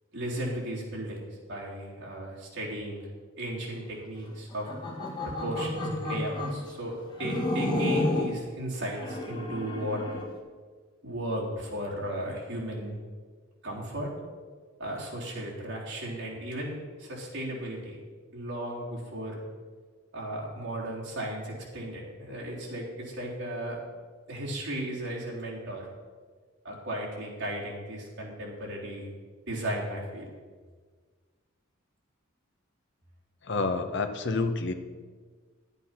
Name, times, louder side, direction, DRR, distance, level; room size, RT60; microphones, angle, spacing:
voice 1, 0.1-3.0 3.4-4.7 5.2-10.0 11.0-13.0 13.6-14.1 14.8-18.0 18.3-19.4 20.1-23.8 24.3-25.9 26.6-29.1 29.5-30.3, right 1 dB, 55° right, -4 dB, 3.6 m, -35 dB
sound 1, 4.5-6.6 7.2-8.4 8.9-10.3, left 1 dB, 20° left, 1.6 m, -31 dB
voice 2, 33.4-34.7, left 3 dB, 60° left, 8 dB, 0.9 m, -28 dB
11.5 x 8.3 x 5.9 m, 1.5 s
head